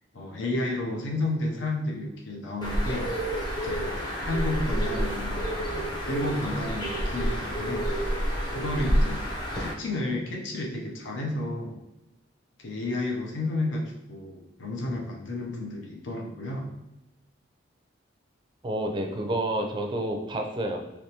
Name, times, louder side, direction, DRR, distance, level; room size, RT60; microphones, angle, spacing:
voice 1, 0.1-3.1 3.6-3.9 4.2-5.8 6.1-8.2 8.5-9.2 9.6-11.8 12.6-13.8 14.1-16.7, left 2 dB, 80° left, 0 dB, 0.7 m, -31 dB
Bird, 2.6-9.7, equal, 25° left, 0.7 m, -29 dB
voice 2, 18.6-20.8, right 1 dB, 25° right, 3 dB, 0.4 m, -29 dB
3.4 x 3.0 x 2.8 m, 0.98 s
head